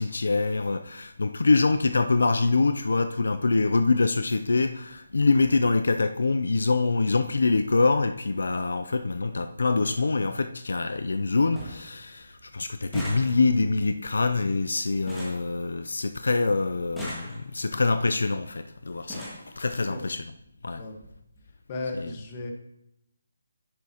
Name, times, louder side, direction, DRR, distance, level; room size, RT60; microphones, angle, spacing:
voice 1, 0.0-19.3 19.6-20.2 20.6-20.8 21.9-22.1, left 3 dB, 75° left, 9 dB, 0.5 m, -25 dB
sound 1, 9.8-10.0 10.5-11.0 11.2-11.3 11.6-11.9 12.2-16.2 16.8-17.7 18.5-18.6 18.9-19.5 20.5-20.6 20.9-21.1 21.4-21.5, equal, ahead, 1.8 m, -40 dB
voice 2, 21.7-22.5, left 2 dB, 25° left, 3 dB, 1.4 m, -34 dB
10.5 x 8.3 x 2.9 m, 0.79 s
hypercardioid pair, 165°, 0 cm